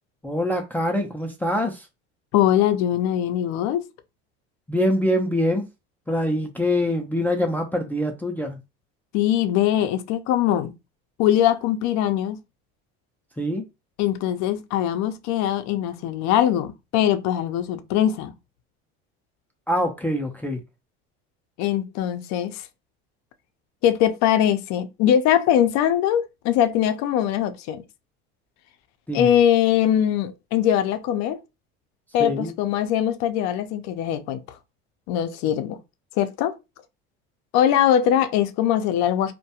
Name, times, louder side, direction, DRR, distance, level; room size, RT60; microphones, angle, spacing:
voice 1, 0.2-1.8 4.7-5.7 6.1-8.6 13.4-13.6 19.7-20.6 29.1-29.3 32.2-32.5, left 1 dB, 5° left, 0.3 m, -24 dB
voice 2, 2.3-3.8 9.1-10.7 11.2-12.4 14.0-18.3 21.6-22.7 23.8-27.8 29.1-31.4 32.1-34.4 35.1-35.8 36.2-36.5 37.5-39.3, left 10 dB, 60° left, 0.5 m, -21 dB
2.2 x 2.2 x 2.8 m
supercardioid pair, 100°, 31 cm